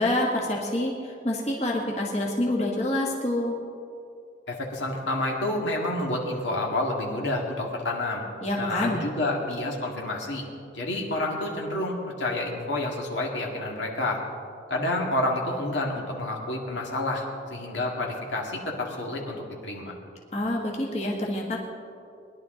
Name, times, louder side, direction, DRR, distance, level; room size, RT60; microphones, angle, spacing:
voice 1, 0.0-3.6 8.4-9.0 20.3-21.6, left 1 dB, 35° left, -2 dB, 1.6 m, -27 dB
voice 2, 4.5-8.3 8.6-10.5 10.7-14.2 14.7-19.9, left 1 dB, 75° left, -1 dB, 2.0 m, -29 dB
20.0 x 11.0 x 3.8 m, 2.5 s
head